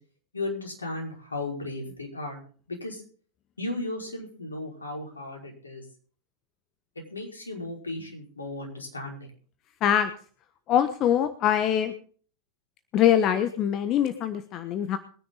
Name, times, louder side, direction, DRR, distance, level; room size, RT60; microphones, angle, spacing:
voice 1, 0.3-2.4 2.7-3.0 3.6-5.8 7.1-9.3, left 2 dB, 75° left, 1 dB, 5.2 m, -35 dB
voice 2, 10.7-11.9 12.9-15.0, left 10 dB, 35° left, 10 dB, 1.2 m, -23 dB
22.0 x 10.0 x 3.9 m, 0.43 s
figure-of-eight pair, 90°, 0 cm